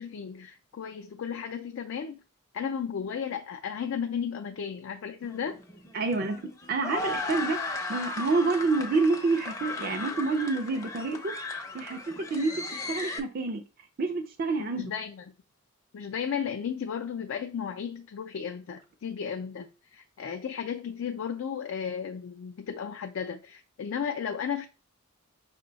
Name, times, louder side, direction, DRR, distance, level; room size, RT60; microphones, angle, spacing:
voice 1, 0.0-2.2 2.5-5.6 14.6-15.3 15.9-24.7, left 7 dB, 65° left, 0.4 m, -34 dB
sound 1, 5.2-13.2, left 3 dB, 15° left, 0.5 m, -36 dB
voice 2, 5.9-6.4 6.7-13.6 14.0-14.8, right 3 dB, 45° right, 0.4 m, -28 dB
5.3 x 2.1 x 3.9 m
head